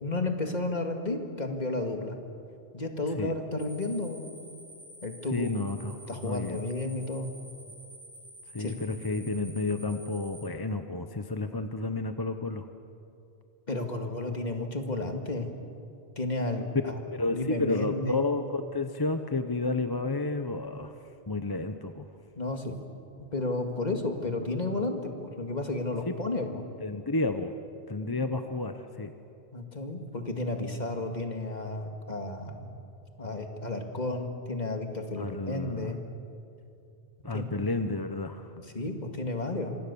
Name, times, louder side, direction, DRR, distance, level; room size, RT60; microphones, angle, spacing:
voice 1, 0.0-2.2 2.7-4.3 5.0-5.5 5.8-7.3 8.6-8.8 13.7-15.5 16.2-16.9 17.3-18.3 22.4-22.8 23.3-26.6 29.5-32.7 33.2-36.0 37.3-37.6 38.6-39.8, left 2 dB, 40° left, 4 dB, 2.3 m, -32 dB
sound 1, 3.6-10.5, right 1 dB, 90° left, 7.5 m, -49 dB
voice 2, 5.3-6.0 6.2-6.6 8.5-12.7 16.8-20.9 21.3-22.1 26.1-26.2 26.8-27.5 27.9-29.1 35.2-36.0 37.2-38.5, left 2 dB, 25° left, 8 dB, 0.8 m, -31 dB
26.0 x 25.5 x 7.1 m, 2.6 s
omnidirectional pair, 1.1 m